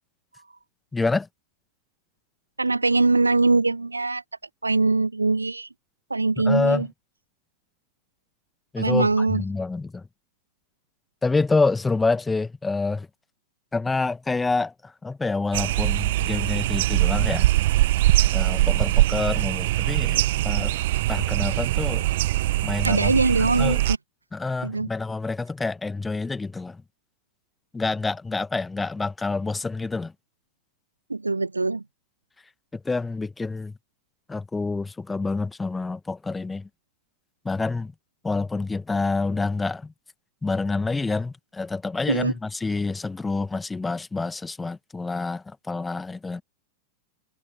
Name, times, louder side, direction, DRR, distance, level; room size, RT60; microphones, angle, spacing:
voice 1, 0.9-1.3 6.4-6.9 8.7-10.0 11.2-13.1 13.7-14.7 15.0-17.5 18.3-20.7 21.1-22.1 22.6-23.1 23.4-23.8 24.3-26.8 27.7-30.1 32.7-33.7 34.3-36.7 37.5-37.9 38.2-39.9 40.4-46.4, left 3 dB, 10° left, 1.8 m, -27 dB
voice 2, 2.6-4.2 4.6-5.7 6.1-6.9 8.8-9.4 22.8-23.8 24.6-24.9 31.1-31.8 42.1-42.3, right 3 dB, 80° right, 1.6 m, -22 dB
sound 1, 15.5-24.0, right 16 dB, 55° right, 1.3 m, -22 dB
figure-of-eight pair, 90°, 0 cm